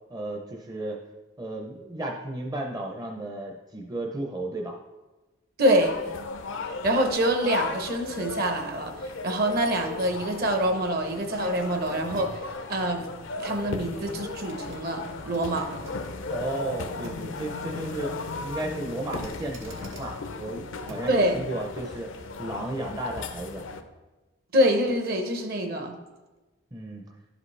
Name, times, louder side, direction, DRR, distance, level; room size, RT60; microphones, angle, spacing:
voice 1, 0.1-1.0 1.4-4.7 16.3-18.1 18.4-22.1 22.4-23.6 26.7-27.0, right 1 dB, 20° right, 1 dB, 0.6 m, -34 dB
voice 2, 5.6-6.0 6.8-13.1 13.4-15.8 21.1-21.4 24.5-26.0, right 1 dB, 50° right, 5 dB, 0.9 m, -25 dB
sound 1, 5.8-23.8, left 3 dB, 70° left, 0.6 m, -36 dB
sound 2, 8.8-21.3 21.7-21.9, right 1 dB, 85° right, 1.3 m, -51 dB
11.5 x 5.0 x 3.3 m, 1.2 s
head